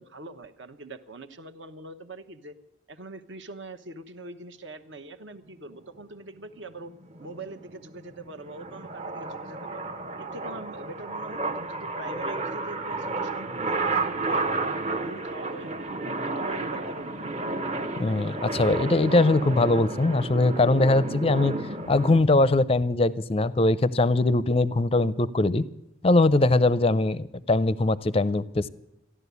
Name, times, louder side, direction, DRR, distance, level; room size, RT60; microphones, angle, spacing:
voice 1, 0.0-2.5 2.9-9.9 10.2-14.6 14.9-17.3, right 2 dB, 65° right, 9 dB, 1.0 m, -43 dB
sound 1, 6.9-22.2, right 3 dB, 30° right, 0.8 m, -32 dB
voice 2, 18.0-21.5 21.9-25.7 26.0-28.7, left 2 dB, 30° left, 18 dB, 0.5 m, -21 dB
14.0 x 11.5 x 8.2 m, 0.93 s
head